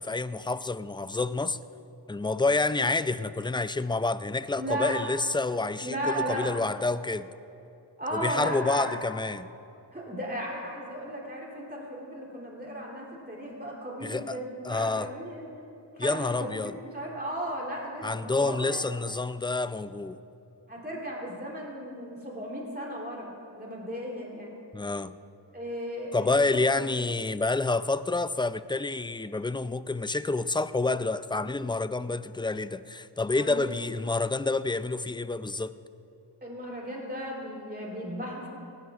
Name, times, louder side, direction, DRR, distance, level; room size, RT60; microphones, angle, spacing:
voice 1, 0.0-1.6 2.1-7.3 8.1-9.5 14.0-14.4 14.6-15.1 16.0-16.8 18.0-20.2 24.7-25.1 26.1-35.7, left 3 dB, 10° left, 14 dB, 0.4 m, -28 dB
voice 2, 4.6-5.0 5.8-6.5 8.0-8.9 9.9-15.5 16.0-18.8 20.7-24.6 25.5-26.9 33.3-33.8 36.4-38.5, equal, 20° right, -3 dB, 3.4 m, -35 dB
19.0 x 16.0 x 2.5 m, 2.8 s
cardioid pair, 40°, 43 cm